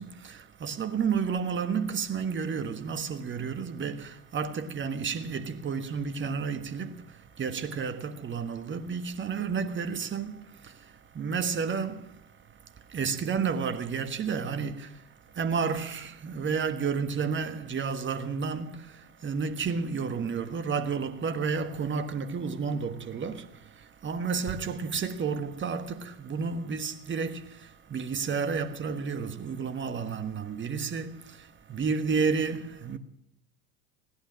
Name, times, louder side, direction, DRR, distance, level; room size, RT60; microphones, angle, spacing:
voice 1, 0.0-33.0, right 5 dB, 25° right, 1.4 m, -31 dB
16.5 x 11.5 x 6.2 m
hypercardioid pair, 80°, 44 cm